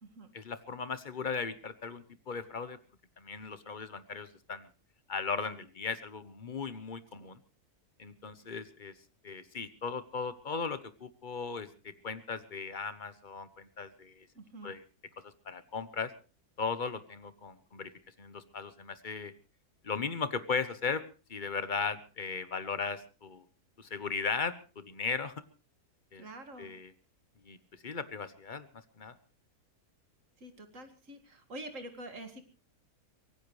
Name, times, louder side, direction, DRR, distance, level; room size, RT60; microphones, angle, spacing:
voice 1, 0.3-2.8 3.2-4.7 5.1-7.4 8.0-8.9 9.2-14.3 14.6-14.8 15.2-16.1 16.6-17.9 18.2-19.3 19.8-21.0 21.3-23.4 23.8-25.3 26.1-26.2 26.6-26.9 27.4-27.6 27.8-28.7 29.0-29.2, left 5 dB, 35° left, 13 dB, 1.1 m, -37 dB
voice 2, 14.3-14.7 26.1-26.7 30.4-32.5, right 1 dB, 55° right, 7 dB, 2.5 m, -46 dB
24.0 x 17.5 x 3.2 m, 0.33 s
omnidirectional pair, 1.6 m